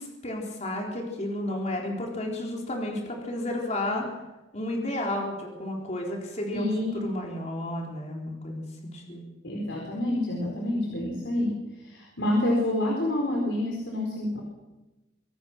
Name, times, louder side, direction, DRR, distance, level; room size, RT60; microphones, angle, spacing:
voice 1, 0.0-4.1 4.5-9.2, left 1 dB, 40° left, 0 dB, 4.0 m, -32 dB
voice 2, 6.5-7.0 9.4-14.4, left 1 dB, 80° left, -1 dB, 4.6 m, -28 dB
25.0 x 18.0 x 6.2 m, 1.1 s
head